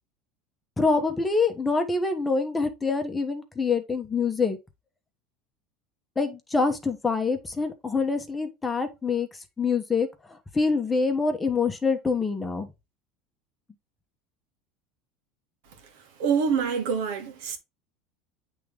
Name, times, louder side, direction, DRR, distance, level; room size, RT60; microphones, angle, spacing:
voice 1, 0.8-4.6 6.2-9.3 9.6-10.1 10.5-12.7, left 4 dB, 15° left, 1.1 m, -25 dB
voice 2, 16.2-17.6, right 6 dB, 75° right, 1.7 m, -25 dB
8.3 x 3.6 x 3.3 m
supercardioid pair, 125°, 0 cm